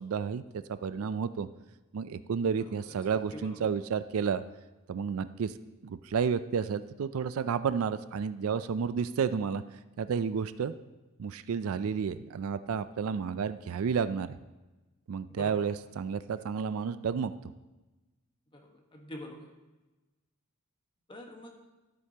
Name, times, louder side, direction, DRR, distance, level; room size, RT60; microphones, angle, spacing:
voice 1, 0.0-1.5 1.9-4.4 4.9-5.5 5.8-9.6 10.0-10.7 11.2-14.4 15.1-17.3, right 6 dB, 70° right, 13 dB, 0.4 m, -31 dB
voice 2, 3.3-3.7 15.3-15.7 18.5-19.5 21.1-21.5, left 1 dB, 25° left, 2 dB, 1.3 m, -45 dB
13.0 x 7.9 x 2.9 m, 1.1 s
head